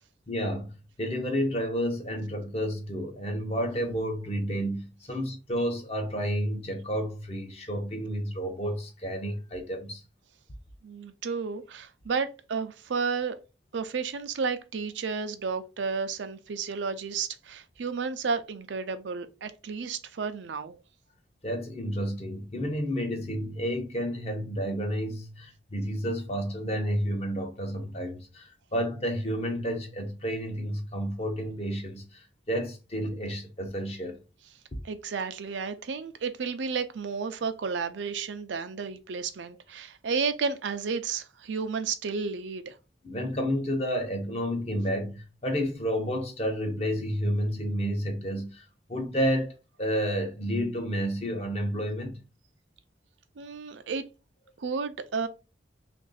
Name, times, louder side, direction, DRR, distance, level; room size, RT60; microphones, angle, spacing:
voice 1, 0.3-0.7 1.0-10.0 21.4-32.2 32.5-34.2 43.0-48.6 48.9-49.5 49.8-52.2, equal, 35° left, 0.8 m, -30 dB
voice 2, 10.8-13.4 13.7-20.8 34.8-42.8 53.4-54.0 54.6-55.3, right 5 dB, 80° right, 0.5 m, -32 dB
3.0 x 2.5 x 3.9 m
head